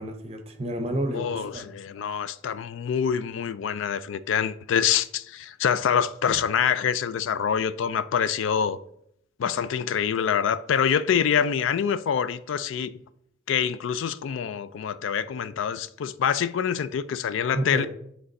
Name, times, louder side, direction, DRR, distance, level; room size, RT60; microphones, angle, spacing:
voice 1, 0.0-1.6 2.1-2.2 17.5-17.9, right 1 dB, 30° right, 0.7 m, -30 dB
voice 2, 1.1-8.8 9.4-12.9 13.5-17.9, left 7 dB, 65° left, 0.3 m, -25 dB
7.9 x 3.3 x 4.0 m
head